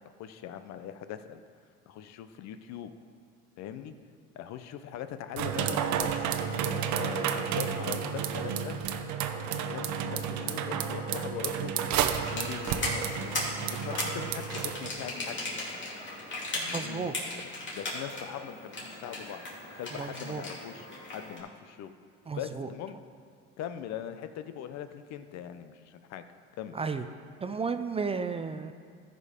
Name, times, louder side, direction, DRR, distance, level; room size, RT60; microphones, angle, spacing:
voice 1, 0.2-1.4 1.9-2.9 3.6-4.0 4.3-6.2 6.8-8.8 9.5-11.8 12.3-15.7 16.5-17.0 17.7-20.9 21.1-21.9 22.4-23.0 23.6-26.2 26.6-26.8, left 10 dB, 65° left, 10 dB, 0.7 m, -41 dB
sound 1, 5.4-14.9, right 7 dB, 65° right, 0.8 m, -31 dB
sound 2, 12.2-21.4, left 2 dB, 40° left, 2.7 m, -37 dB
voice 2, 16.7-17.1 19.9-20.5 22.3-22.7 26.7-27.1 27.4-28.7, right 5 dB, 20° right, 9 dB, 0.4 m, -33 dB
14.0 x 5.3 x 5.1 m, 2.2 s
cardioid pair, 110°, 30 cm